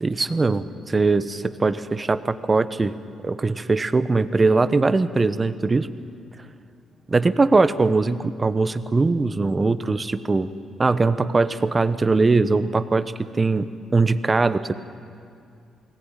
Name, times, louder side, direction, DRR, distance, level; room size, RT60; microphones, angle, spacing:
voice 1, 0.0-2.9 3.2-5.9 7.1-10.5 10.8-14.8, right 3 dB, 25° right, 13 dB, 0.9 m, -21 dB
21.0 x 17.5 x 9.1 m, 2.4 s
cardioid pair, 90°, 0 cm